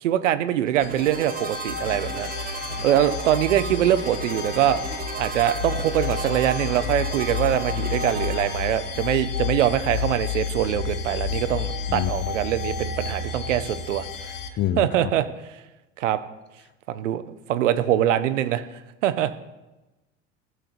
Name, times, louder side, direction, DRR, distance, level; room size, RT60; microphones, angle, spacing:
voice 1, 0.0-2.3 2.8-4.8 5.2-14.3 14.8-15.3 16.0-16.2 16.9-17.2 17.5-18.6 19.0-19.3, right 11 dB, 75° right, 12 dB, 0.6 m, -23 dB
sound 1, 0.6-9.1, right 5 dB, 25° right, 0.9 m, -36 dB
sound 2, 0.8-14.5, left 6 dB, 75° left, 0.9 m, -31 dB
voice 2, 11.9-12.3 14.6-15.1, left 11 dB, 30° left, 13 dB, 0.5 m, -27 dB
15.0 x 6.5 x 2.5 m, 1.0 s
figure-of-eight pair, 65°, 37 cm